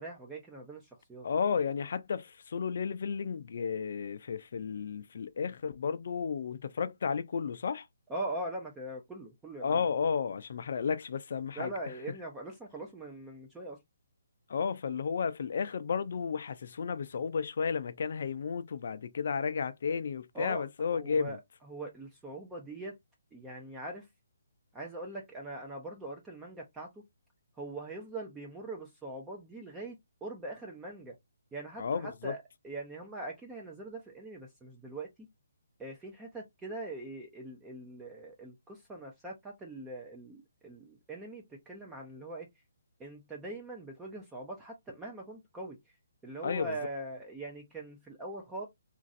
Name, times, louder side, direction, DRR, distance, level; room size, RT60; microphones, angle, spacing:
voice 1, 0.0-1.3 8.1-9.9 11.6-13.8 20.3-20.6 20.9-22.9 23.3-24.1 24.7-26.9 27.6-31.2 31.5-35.1 35.8-42.5 43.0-45.8 46.2-48.7, right 2 dB, 10° right, 0.4 m, -42 dB
voice 2, 1.2-7.9 9.6-11.7 14.5-21.4 31.8-32.3 46.4-46.7, left 6 dB, 55° left, 0.4 m, -33 dB
3.0 x 2.5 x 2.5 m
hypercardioid pair, 165°, 0 cm